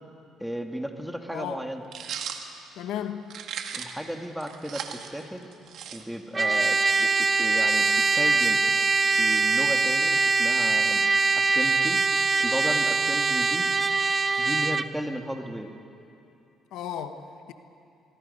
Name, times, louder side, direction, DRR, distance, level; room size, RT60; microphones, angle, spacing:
voice 1, 0.4-1.8 3.7-5.5 5.9-7.9 8.1-8.6 9.2-11.1 11.4-12.0 12.4-13.7 14.4-15.7, equal, ahead, 1.9 m, -34 dB
voice 2, 1.3-1.7 2.8-3.4 16.7-17.5, left 9 dB, 80° left, 1.2 m, -35 dB
sound 1, 1.9-2.4 3.3-4.0 4.4-6.4, right 8 dB, 65° right, 1.9 m, -37 dB
Trumpet, 6.3-14.9, right 4 dB, 25° right, 0.6 m, -23 dB
23.5 x 23.5 x 5.5 m
cardioid pair, 110°, 0 cm